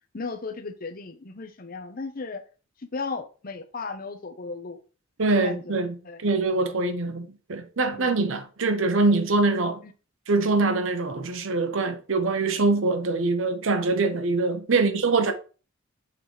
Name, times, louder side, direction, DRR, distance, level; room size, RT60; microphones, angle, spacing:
voice 1, 0.1-2.4 2.8-4.8 5.3-5.8 6.0-6.2 6.5-6.6 7.9-8.1 9.8-9.9 14.7-15.0, left 4 dB, 45° left, 0.8 m, -35 dB
voice 2, 5.2-9.8 10.3-15.3, right 3 dB, 70° right, 0.8 m, -24 dB
6.7 x 3.2 x 4.4 m
head